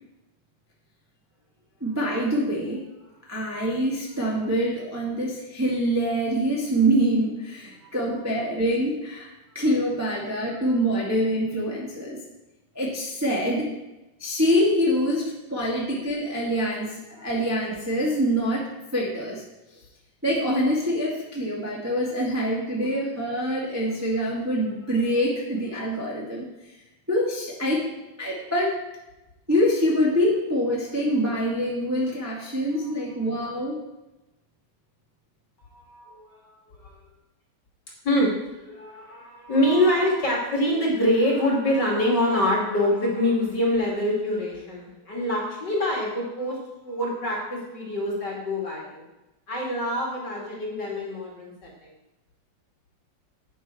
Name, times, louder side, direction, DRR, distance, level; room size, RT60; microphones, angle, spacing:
voice 1, 1.8-2.8 3.3-9.3 9.5-12.2 12.7-13.7 14.2-19.4 20.2-26.5 27.1-27.8 28.2-28.8 29.5-33.8, equal, 5° right, -5 dB, 1.4 m, -25 dB
voice 2, 32.7-33.1 35.6-36.3 36.7-37.0 38.0-49.0 49.5-51.9, left 1 dB, 35° left, -3 dB, 2.5 m, -25 dB
10.0 x 9.0 x 4.4 m, 0.98 s
omnidirectional pair, 3.8 m